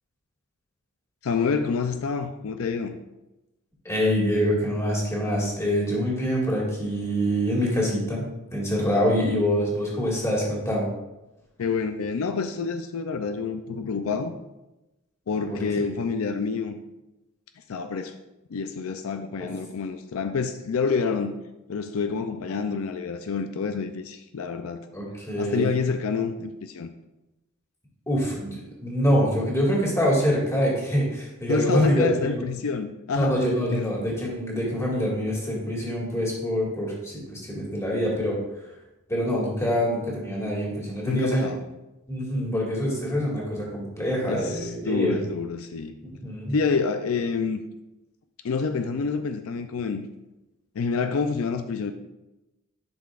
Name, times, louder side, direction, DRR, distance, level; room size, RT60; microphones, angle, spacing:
voice 1, 1.2-3.0 11.6-14.3 15.3-16.8 17.7-18.1 18.5-21.4 21.7-24.9 25.4-26.9 31.5-33.4 33.7-33.9 41.1-41.6 44.3-46.0 46.5-47.6 48.4-50.1 50.7-51.9, left 5 dB, 75° left, 8 dB, 0.4 m, -28 dB
voice 2, 3.9-8.3 8.5-10.9 15.5-15.6 24.9-25.8 28.1-32.5 33.2-38.4 39.1-41.5 42.1-45.1 46.0-46.6, equal, 15° left, -3 dB, 1.8 m, -25 dB
10.5 x 5.8 x 2.4 m, 0.99 s
head